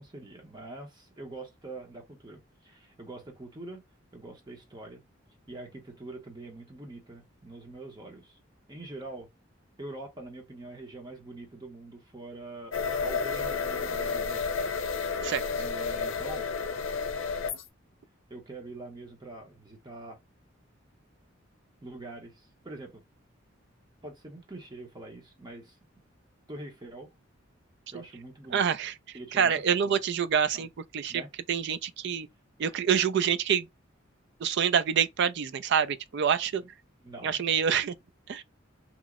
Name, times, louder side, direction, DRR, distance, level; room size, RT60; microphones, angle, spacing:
voice 1, 0.0-3.8 4.1-5.0 5.5-8.4 8.7-9.3 9.8-14.5 15.6-16.5 18.3-20.2 21.8-23.0 24.0-25.8 26.5-27.1 27.9-28.6 29.1-29.5 29.8-30.0 30.5-30.7 31.1-31.3 32.6-32.8 36.6-36.7 37.0-37.4, right 2 dB, 20° right, 0.7 m, -44 dB
sound 1, 12.7-17.6, left 5 dB, 80° left, 0.5 m, -31 dB
voice 2, 28.5-31.2 31.5-32.3 32.6-33.7 34.4-36.6 37.2-37.9 38.3-38.4, right 7 dB, 60° right, 0.4 m, -27 dB
3.0 x 2.0 x 3.5 m
head